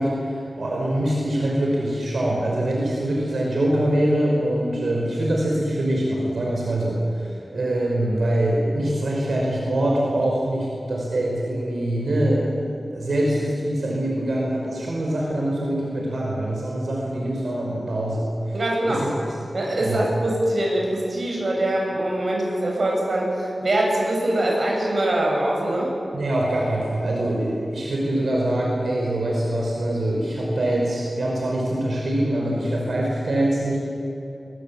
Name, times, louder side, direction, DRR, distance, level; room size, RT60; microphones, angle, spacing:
voice 1, 0.0-12.5 12.9-18.6 18.9-19.1 19.8-20.1 26.1-33.8, right 1 dB, 85° right, -3 dB, 5.3 m, -24 dB
voice 2, 18.5-19.1 19.5-25.9, right 1 dB, 60° right, -1 dB, 7.6 m, -23 dB
23.5 x 22.0 x 8.7 m, 2.9 s
wide cardioid pair, 105°, 0 cm